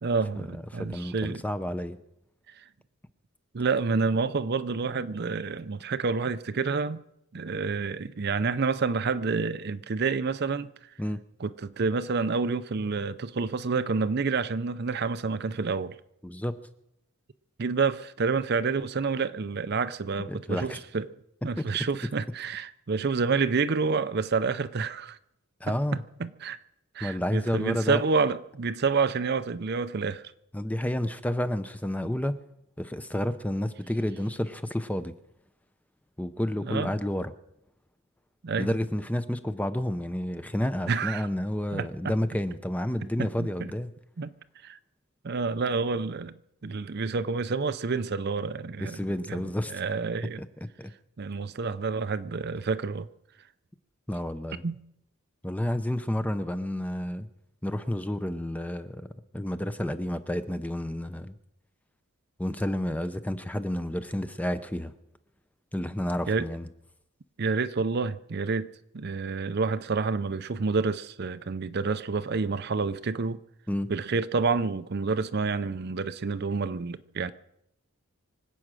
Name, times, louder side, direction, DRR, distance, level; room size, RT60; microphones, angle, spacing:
voice 1, 0.0-1.4 3.5-7.0 7.3-10.7 11.4-16.0 17.6-21.1 21.4-25.2 25.7-26.6 26.9-30.3 36.6-36.9 38.4-38.7 40.9-41.3 41.7-42.1 43.2-43.7 44.2-44.3 44.6-44.8 45.2-49.0 49.3-49.4 49.7-50.4 51.2-53.1 54.6-54.8 66.3-66.5 67.4-73.4 73.9-77.3, right 4 dB, 45° right, 0.5 m, -28 dB
voice 2, 0.7-2.0 11.0-11.2 16.2-16.6 20.3-20.8 21.6-21.7 25.6-26.0 27.0-28.0 30.5-32.4 32.8-35.1 36.2-37.3 38.6-43.9 48.8-49.8 50.8-50.9 54.1-54.6 55.4-57.3 57.6-59.1 59.3-61.3 62.4-64.9 65.7-66.7 73.7-73.9, left 1 dB, 5° left, 0.6 m, -30 dB
24.5 x 8.6 x 6.2 m
head